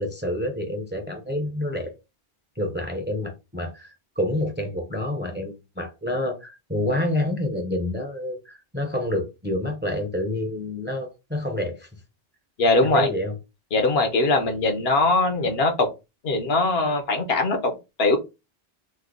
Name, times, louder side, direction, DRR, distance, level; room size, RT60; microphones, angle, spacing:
voice 1, 0.0-1.9 2.6-11.9 12.8-13.4, left 1 dB, 15° right, 0.5 m, -28 dB
voice 2, 12.6-13.1 13.7-15.9 16.2-17.7 18.0-18.2, left 2 dB, 75° left, 1.0 m, -21 dB
3.2 x 2.1 x 3.6 m
omnidirectional pair, 1.0 m